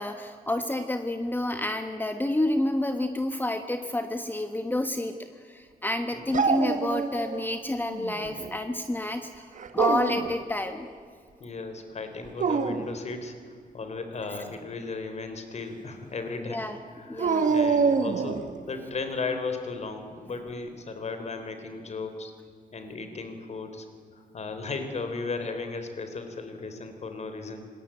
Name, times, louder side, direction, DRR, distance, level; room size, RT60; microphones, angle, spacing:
voice 1, 0.0-5.1 5.5-9.4 9.7-10.9 16.5-16.8 17.1-17.5, left 1 dB, 15° left, 7 dB, 1.3 m, -29 dB
Dog, 6.3-7.5 7.8-8.5 9.6-10.3 12.3-12.9 17.2-18.5, right 5 dB, 55° right, 1.8 m, -26 dB
voice 2, 11.4-16.7 17.0-22.3 22.7-23.9 24.1-27.7, left 4 dB, 45° left, 7 dB, 3.7 m, -36 dB
27.0 x 21.0 x 9.1 m, 2.1 s
wide cardioid pair, 160°, 15 cm